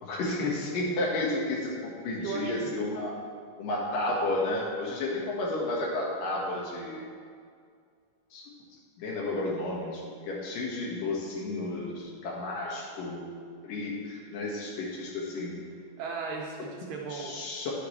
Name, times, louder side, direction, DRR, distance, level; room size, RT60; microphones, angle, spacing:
voice 1, 0.0-3.1 3.6-7.0 8.3-8.4 9.0-13.2 13.6-15.6 17.1-17.7, left 2 dB, 85° left, -3 dB, 3.1 m, -32 dB
voice 2, 2.0-2.7 16.0-17.4, right 5 dB, 75° right, -1 dB, 1.7 m, -37 dB
10.5 x 6.9 x 3.2 m, 2.1 s
omnidirectional pair, 3.8 m